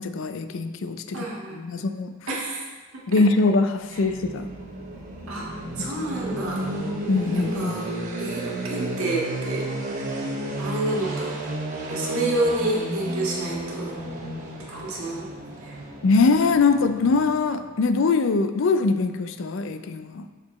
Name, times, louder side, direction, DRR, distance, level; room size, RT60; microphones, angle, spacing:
voice 1, 0.0-1.2 1.5-2.1 3.1-4.5 5.8-5.9 7.1-7.8 16.0-20.3, left 3 dB, 60° left, 10 dB, 0.4 m, -22 dB
voice 2, 1.1-1.9 2.3-2.7 2.9-3.0 3.9-4.0 5.3-6.6 7.3-7.9 8.2-9.7 10.6-11.5 11.9-13.9 14.7-15.3 15.6-15.8, right 2 dB, 75° right, -4 dB, 1.7 m, -29 dB
sound 1, 3.8-17.7, right 1 dB, 35° right, 1.0 m, -32 dB
6.5 x 4.9 x 4.1 m, 1.4 s
head